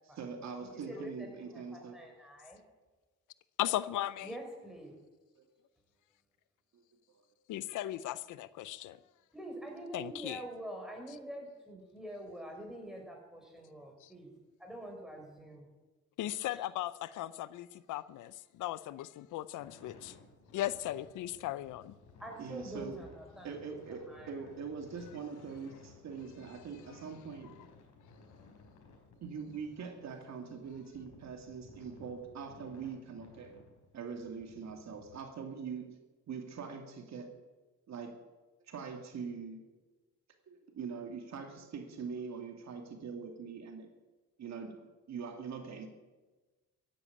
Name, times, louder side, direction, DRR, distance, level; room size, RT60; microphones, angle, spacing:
voice 1, 0.0-2.0 5.3-5.5 6.7-6.8 22.4-23.0 23.4-27.5 29.2-33.5 33.9-36.0 36.3-37.3 37.9-38.2 38.6-39.6 40.5-43.9 44.4-45.9, right 5 dB, 65° right, 4 dB, 2.5 m, -43 dB
voice 2, 0.6-2.6 4.2-5.0 9.3-14.3 14.6-15.7 22.2-23.6 24.1-24.3, right 1 dB, ahead, 1 dB, 5.8 m, -46 dB
voice 3, 3.6-4.3 7.5-9.0 9.9-10.4 16.2-20.2 20.5-21.9, left 14 dB, 85° left, 17 dB, 0.6 m, -37 dB
sound 1, 19.6-35.2, left 4 dB, 65° left, 4.3 m, -58 dB
15.0 x 10.5 x 8.6 m, 1.2 s
cardioid pair, 90°, 30 cm